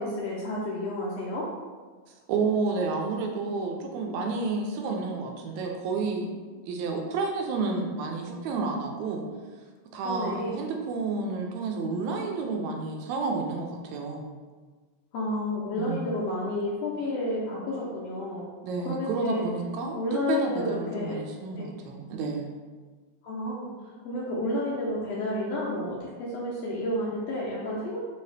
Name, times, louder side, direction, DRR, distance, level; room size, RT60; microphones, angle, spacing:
voice 1, 0.0-1.5 10.0-10.6 15.1-18.4 18.8-19.4 19.9-21.2 21.5-21.7 23.2-23.7 24.0-28.0, left 1 dB, 75° left, -5 dB, 1.5 m, -30 dB
voice 2, 2.3-6.3 6.7-9.3 9.9-14.3 15.8-16.1 18.6-20.0 20.3-22.5, right 4 dB, 80° right, 2 dB, 1.8 m, -30 dB
4.5 x 2.8 x 3.2 m, 1.4 s
omnidirectional pair, 3.4 m